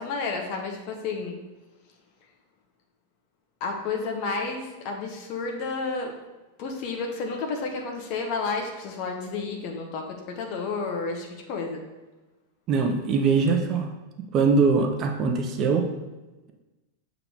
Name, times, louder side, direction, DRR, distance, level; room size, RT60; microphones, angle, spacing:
voice 1, 0.0-1.4 3.6-6.1 6.6-11.8, left 4 dB, 45° left, 2 dB, 0.9 m, -31 dB
voice 2, 12.7-13.9 14.3-15.9, right 4 dB, 35° right, 4 dB, 0.7 m, -22 dB
7.0 x 3.9 x 4.7 m, 1.1 s
figure-of-eight pair, 90°, 0 cm